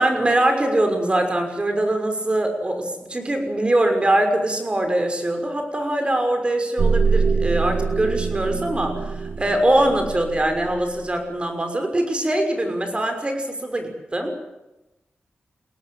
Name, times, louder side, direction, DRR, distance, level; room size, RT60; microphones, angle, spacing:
voice 1, 0.0-14.4, right 1 dB, 30° right, 6 dB, 6.1 m, -22 dB
sound 1, 6.8-11.0, right 4 dB, 75° right, 1.8 m, -24 dB
23.0 x 17.5 x 9.0 m, 0.97 s
cardioid pair, 65°, 4 cm